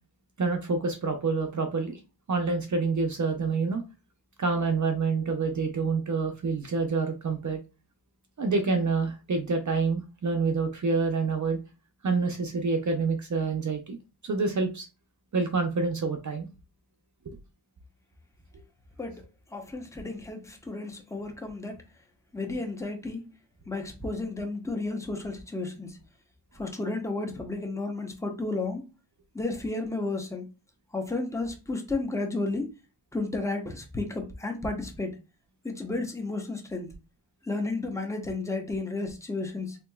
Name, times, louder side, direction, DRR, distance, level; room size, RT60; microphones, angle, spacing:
voice 1, 0.4-2.0 2.3-3.8 4.4-7.6 8.4-11.6 12.0-14.0 14.2-14.9 15.3-16.5 17.3-17.4, right 4 dB, 45° right, 0.6 m, -27 dB
voice 2, 19.5-21.8 22.3-23.2 23.7-26.0 26.6-28.8 29.3-30.5 30.9-32.7 33.1-35.2 35.6-36.9 37.4-39.8, left 2 dB, 5° left, 0.7 m, -32 dB
3.5 x 2.9 x 2.2 m
wide cardioid pair, 80°, 42 cm